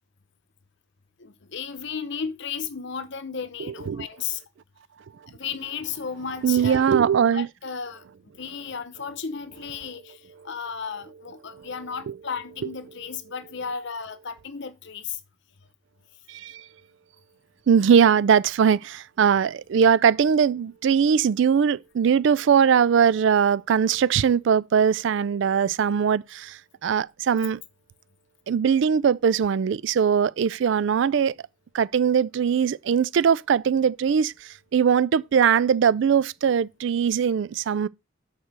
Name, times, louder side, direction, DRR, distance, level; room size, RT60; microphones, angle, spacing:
voice 1, 1.2-4.4 5.3-6.9 7.3-8.0 8.4-15.2, left 6 dB, 60° left, 0.8 m, -34 dB
voice 2, 6.4-7.5 11.5-11.7 12.1-12.2 16.3-16.6 17.7-27.6 28.5-31.3 31.7-37.9, right 7 dB, 60° right, 0.3 m, -21 dB
6.6 x 4.4 x 6.4 m
head